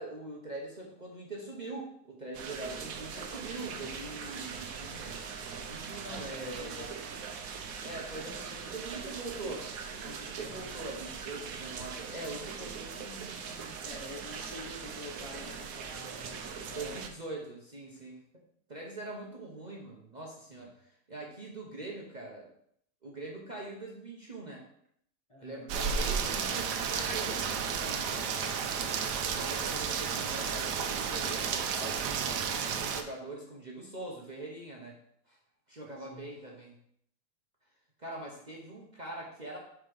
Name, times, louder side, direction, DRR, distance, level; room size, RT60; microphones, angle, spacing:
voice 1, 0.0-5.2 5.7-6.9 7.8-9.7 10.0-13.7 16.7-18.2 18.7-22.5 23.0-24.6 25.4-28.7 29.3-32.3 32.8-35.0 35.3-35.4 35.7-36.7 38.0-39.6, right 2 dB, 30° right, -2 dB, 1.1 m, -43 dB
sound 1, 2.3-17.1, right 6 dB, 65° right, 1.2 m, -41 dB
voice 2, 6.0-6.9 10.4-10.7 13.8-17.5 20.5-20.6 25.3-25.7 29.5-29.7 36.1-36.3, left 1 dB, 20° left, -3 dB, 1.1 m, -48 dB
Rain, 25.7-33.0, right 6 dB, 85° right, 1.3 m, -32 dB
7.3 x 4.8 x 5.4 m, 0.70 s
omnidirectional pair, 1.7 m